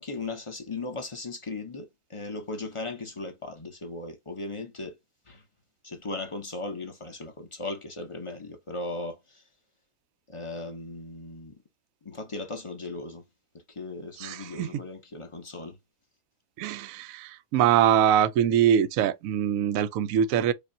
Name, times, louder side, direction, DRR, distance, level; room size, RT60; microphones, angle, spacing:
voice 1, 0.0-5.0 5.3-5.4 5.8-9.4 10.3-11.5 12.0-13.2 13.7-15.8, left 2 dB, 25° left, 0.6 m, -37 dB
voice 2, 14.2-14.8 16.6-20.5, right 9 dB, 70° right, 0.8 m, -23 dB
5.1 x 2.4 x 2.7 m
omnidirectional pair, 1.9 m